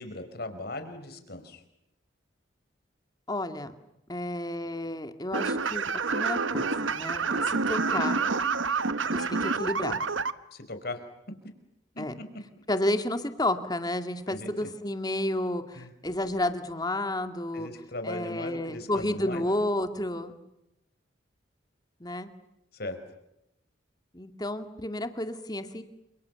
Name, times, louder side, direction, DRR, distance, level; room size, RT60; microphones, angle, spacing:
voice 1, 0.0-1.6 10.5-11.0 14.3-14.5 15.7-15.9 17.5-19.4 22.7-23.0, left 2 dB, 55° left, 8 dB, 5.2 m, -38 dB
voice 2, 3.3-3.7 4.1-5.8 6.1-8.2 9.1-10.0 12.0-12.1 12.7-17.7 18.0-20.4 22.0-22.3 24.1-25.8, left 1 dB, 20° left, 8 dB, 2.3 m, -31 dB
sound 1, 5.3-10.3, right 4 dB, 85° right, 1.2 m, -28 dB
30.0 x 28.0 x 7.1 m, 0.86 s
head